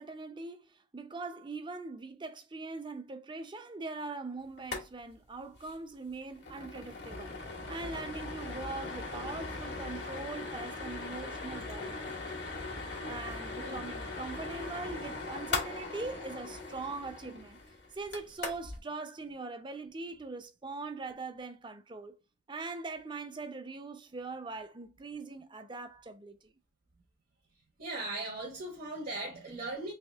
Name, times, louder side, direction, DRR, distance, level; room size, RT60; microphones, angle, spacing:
voice 1, 0.0-7.3 7.7-12.1 13.0-17.6 17.9-22.2 22.5-26.5, right 3 dB, 25° right, 0.6 m, -41 dB
sound 1, 4.6-4.9 5.1-5.2 5.5-5.7 6.1-18.8, left 3 dB, 75° left, 1.4 m, -39 dB
voice 2, 27.8-29.9, right 2 dB, 55° right, 1.0 m, -38 dB
3.5 x 3.0 x 3.4 m
head